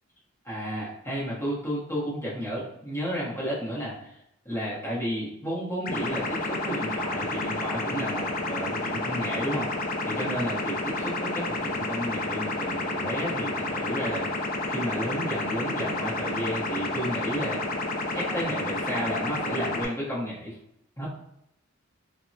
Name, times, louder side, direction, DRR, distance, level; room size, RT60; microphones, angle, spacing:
voice 1, 0.4-4.2 4.4-14.4 14.7-17.6 18.1-20.6 21.0-21.1, equal, 15° left, -8 dB, 0.8 m, -32 dB
sound 1, 5.8-19.8, left 2 dB, 45° left, 0.4 m, -30 dB
3.3 x 2.0 x 2.6 m, 0.79 s
head